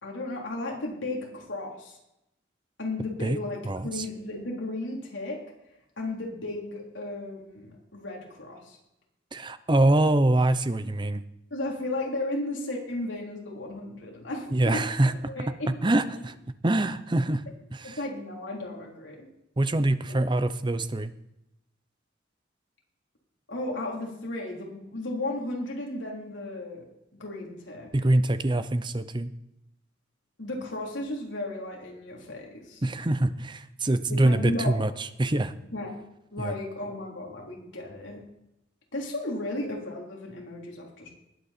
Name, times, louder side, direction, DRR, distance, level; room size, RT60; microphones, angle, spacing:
voice 1, 0.0-2.0 2.8-5.4 6.0-8.8 11.5-14.8 15.3-16.2 17.8-19.3 20.1-20.2 23.5-26.8 27.1-27.9 30.4-32.8 34.1-34.8 35.7-36.0 36.3-38.2 38.9-41.1, left 2 dB, 70° left, -1 dB, 3.6 m, -34 dB
voice 2, 3.6-4.1 9.3-11.2 14.5-15.1 15.8-16.3 16.6-17.4 17.7-18.0 19.6-21.1 27.9-29.3 32.8-35.5 36.4-36.5, right 1 dB, 25° right, 13 dB, 0.6 m, -24 dB
20.0 x 8.2 x 4.3 m, 0.84 s
head